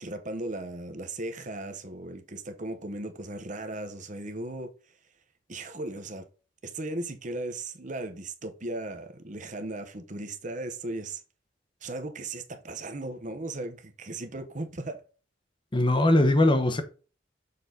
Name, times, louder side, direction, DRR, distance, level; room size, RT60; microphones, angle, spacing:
voice 1, 0.0-4.7 5.5-6.3 6.6-11.2 11.8-15.0, right 2 dB, 40° right, 1.0 m, -37 dB
voice 2, 15.7-16.8, left 1 dB, 25° left, 0.9 m, -21 dB
6.8 x 4.0 x 3.9 m
head